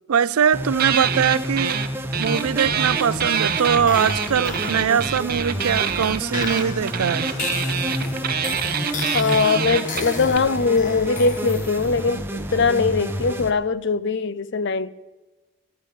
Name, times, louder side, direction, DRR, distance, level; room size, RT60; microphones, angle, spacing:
voice 1, 0.1-1.8 2.2-7.3, right 7 dB, 85° right, 0.4 m, -22 dB
sound 1, 0.5-13.5, equal, 10° right, 1.0 m, -29 dB
sound 2, 0.8-1.9 2.1-10.4, right 8 dB, 45° right, 0.8 m, -26 dB
sound 3, 2.2-12.1, left 3 dB, 35° left, 1.3 m, -35 dB
voice 2, 9.1-14.9, left 4 dB, 55° left, 0.6 m, -21 dB
15.0 x 9.6 x 7.5 m
head